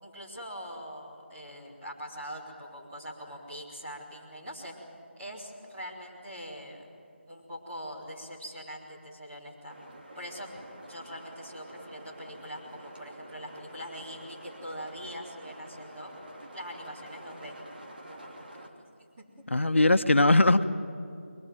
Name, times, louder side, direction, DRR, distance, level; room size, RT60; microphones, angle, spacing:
voice 1, 0.0-4.7 5.2-7.0 7.3-9.8 10.1-10.5 10.9-16.1 16.5-17.5 18.0-18.8 19.2-19.3, equal, 10° right, -7 dB, 3.3 m, -43 dB
sound 1, 9.7-18.7, right 1 dB, 50° right, 3.1 m, -48 dB
voice 2, 19.5-20.6, left 2 dB, 80° left, 9 dB, 1.1 m, -20 dB
23.0 x 20.5 x 9.2 m, 2.5 s
figure-of-eight pair, 175°, 7 cm